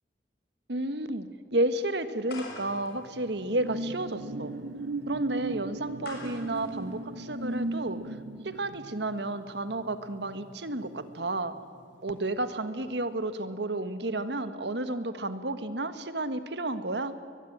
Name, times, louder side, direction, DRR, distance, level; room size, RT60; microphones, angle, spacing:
voice 1, 0.7-4.5 5.1-8.2 8.4-11.5 12.0-17.1, right 2 dB, 70° right, 11 dB, 1.5 m, -32 dB
sound 1, 2.3-7.9, left 2 dB, 60° left, 6.4 m, -48 dB
sound 2, 2.6-11.6 11.9-12.2, right 2 dB, 90° right, 1.0 m, -38 dB
22.0 x 22.0 x 8.7 m, 2.3 s
head